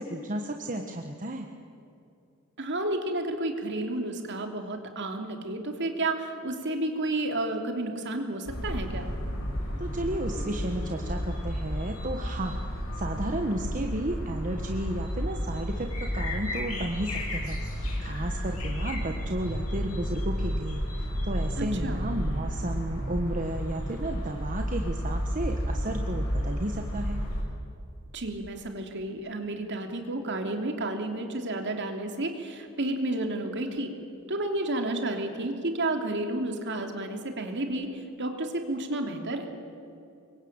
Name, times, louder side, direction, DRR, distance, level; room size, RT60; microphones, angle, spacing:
voice 1, 0.0-1.5 9.8-27.2, right 1 dB, 40° right, 3 dB, 1.4 m, -33 dB
voice 2, 2.6-9.1 21.6-22.0 28.1-33.9 34.3-39.5, right 2 dB, 55° right, 4 dB, 3.0 m, -31 dB
sound 1, 8.5-27.4, equal, 80° left, 6.5 m, -32 dB
26.0 x 23.0 x 8.9 m, 2.6 s
head